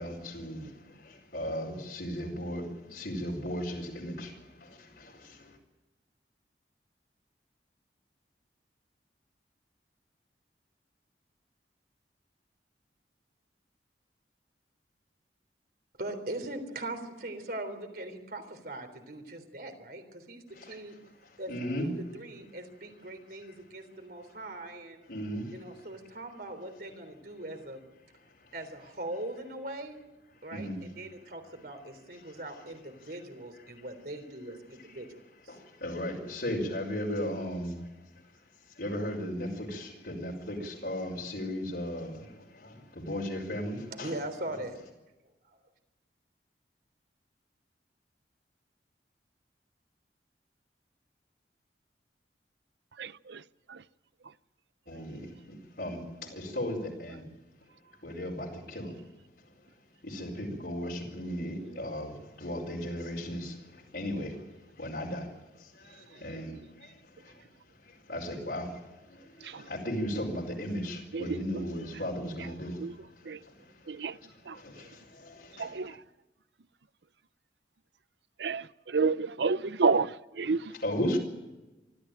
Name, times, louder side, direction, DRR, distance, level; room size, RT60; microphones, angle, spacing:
voice 1, 0.0-5.6 20.5-20.8 21.5-21.9 25.1-25.6 28.2-28.5 30.5-30.8 32.2-32.6 34.9-35.1 35.5-38.3 38.6-44.1 54.9-57.3 58.0-59.1 59.4-59.7 60.0-74.1 74.5-76.0 80.8-81.2, equal, 65° left, 4.5 m, -37 dB
voice 2, 15.9-21.0 21.4-21.5 21.8-25.0 25.5-27.8 28.5-30.0 30.4-35.2 35.4-35.6 44.0-44.8 45.4-45.6, right 1 dB, 55° right, 3.5 m, -41 dB
voice 3, 53.0-53.4 53.7-53.8 54.2-54.3 66.1-66.2 69.4-69.7 71.1-71.4 72.8-73.0 73.2-73.4 73.9-74.2 74.4-74.9 75.6-76.0 78.4-80.7, right 4 dB, 80° right, 0.6 m, -30 dB
24.5 x 14.0 x 8.9 m
head